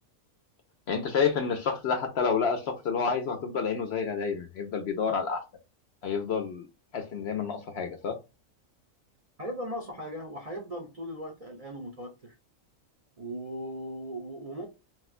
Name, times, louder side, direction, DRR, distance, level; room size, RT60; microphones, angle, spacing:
voice 1, 0.9-5.4 6.0-6.7 6.9-8.2, left 5 dB, 65° left, 0.7 m, -29 dB
voice 2, 9.4-12.4 13.2-14.7, equal, 40° right, 0.6 m, -38 dB
4.2 x 2.1 x 2.4 m
omnidirectional pair, 1.4 m